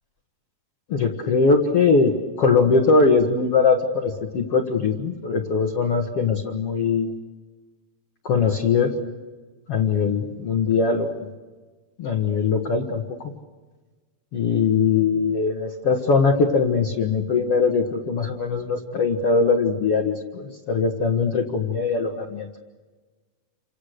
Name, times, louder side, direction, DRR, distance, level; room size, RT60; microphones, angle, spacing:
voice 1, 0.9-2.1 2.4-7.1 8.2-8.9 9.7-11.3 12.0-13.0 14.3-22.5, left 4 dB, 50° left, 1 dB, 2.0 m, -21 dB
30.0 x 27.0 x 6.7 m, 1.3 s
omnidirectional pair, 4.6 m